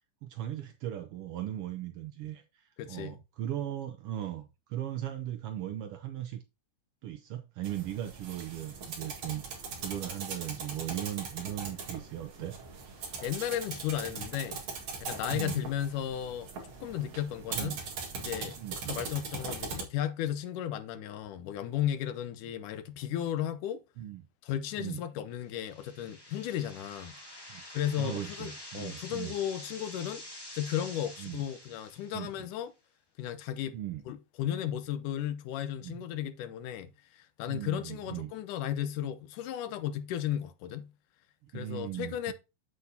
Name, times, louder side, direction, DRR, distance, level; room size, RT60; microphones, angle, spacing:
voice 1, 0.2-6.4 7.0-9.4 9.8-12.5 15.3-15.7 17.5-17.8 18.6-19.0 24.0-24.2 24.8-25.0 27.5-27.6 28.0-29.3 31.2-31.4 32.1-32.5 33.7-34.0 35.8-36.0 37.5-38.3 41.4-42.3, right 12 dB, 80° right, 1.3 m, -38 dB
voice 2, 2.8-3.2 13.2-14.6 15.0-17.8 18.2-23.8 24.4-27.1 27.7-30.2 30.5-32.7 33.2-33.8 34.1-40.9 41.5-42.3, left 11 dB, 85° left, 2.4 m, -35 dB
sound 1, 7.6-19.8, right 4 dB, 55° right, 2.8 m, -40 dB
sound 2, 25.5-32.4, left 1 dB, 10° left, 1.2 m, -47 dB
8.0 x 7.9 x 2.8 m
omnidirectional pair, 3.6 m